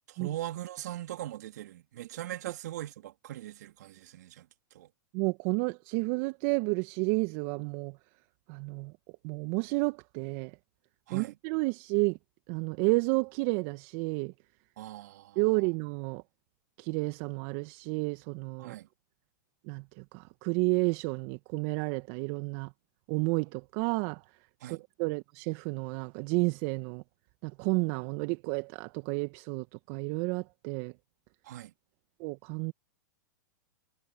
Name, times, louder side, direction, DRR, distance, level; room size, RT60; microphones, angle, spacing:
voice 1, 0.1-4.5 4.7-4.9 11.1-11.4 14.8-15.4 18.6-18.9 24.6-24.8 31.4-31.7, right 13 dB, 65° right, 3.0 m, -40 dB
voice 2, 5.1-7.9 8.5-8.9 9.2-10.5 11.1-12.2 12.5-14.3 15.3-16.2 16.8-18.7 19.7-22.7 23.1-24.2 24.6-27.0 27.4-30.9 32.2-32.7, right 28 dB, 45° right, 1.6 m, -31 dB
hypercardioid pair, 110°, 10 cm